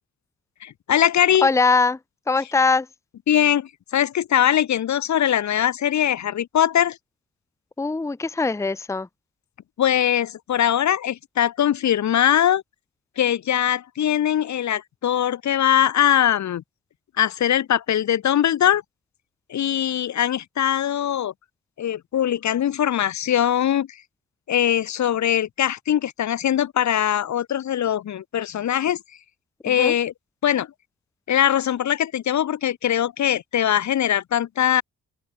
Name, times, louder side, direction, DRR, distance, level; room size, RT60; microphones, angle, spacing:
voice 1, 0.6-1.5 3.3-7.0 9.8-12.6 13.2-16.6 17.2-18.8 19.5-21.3 21.8-24.0 24.5-29.0 29.6-30.1 30.4-30.7 31.3-34.8, left 10 dB, 60° left, 0.9 m, -21 dB
voice 2, 1.4-2.0 2.3-2.9 7.8-9.1 29.8-29.9, left 4 dB, 10° left, 0.7 m, -21 dB
open air
cardioid pair, 110°, 32 cm